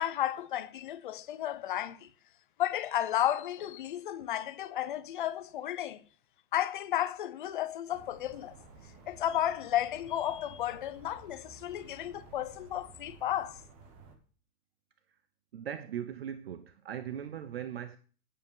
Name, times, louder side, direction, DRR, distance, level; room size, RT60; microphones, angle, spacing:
voice 1, 0.0-2.1 2.6-6.0 6.5-8.5 9.1-13.6, left 12 dB, 35° left, 0.6 m, -33 dB
sound 1, 7.9-14.2, right 4 dB, 15° right, 0.9 m, -54 dB
voice 2, 15.5-18.0, right 9 dB, 40° right, 0.5 m, -39 dB
9.9 x 9.6 x 5.4 m
supercardioid pair, 180°, 46 cm